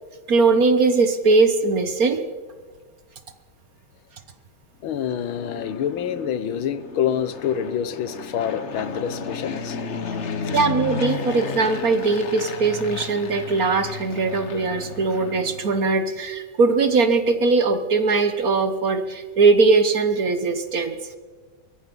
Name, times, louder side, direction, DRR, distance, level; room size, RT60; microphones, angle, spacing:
voice 1, 0.3-2.2 10.5-21.1, right 4 dB, 50° right, 9 dB, 1.5 m, -20 dB
voice 2, 4.8-10.6, left 9 dB, 75° left, 14 dB, 1.8 m, -27 dB
Fixed-wing aircraft airplane, 4.9-16.0, left 5 dB, 40° left, 1.3 m, -33 dB
23.5 x 21.0 x 5.4 m, 1.4 s
omnidirectional pair, 2.3 m